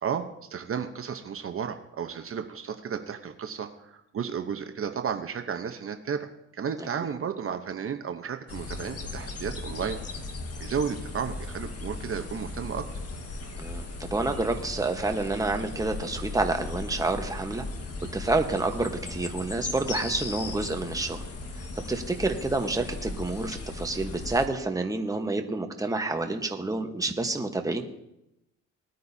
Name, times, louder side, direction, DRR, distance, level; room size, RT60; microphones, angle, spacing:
voice 1, 0.0-10.0 10.6-12.9, right 7 dB, 45° right, 6 dB, 0.9 m, -33 dB
sound 1, 8.5-24.5, left 3 dB, 55° left, 1.8 m, -37 dB
voice 2, 13.6-17.6 18.1-21.2 21.9-27.8, right 2 dB, 10° right, 5 dB, 1.2 m, -28 dB
18.5 x 9.4 x 2.8 m, 0.88 s
cardioid pair, 90°, 30 cm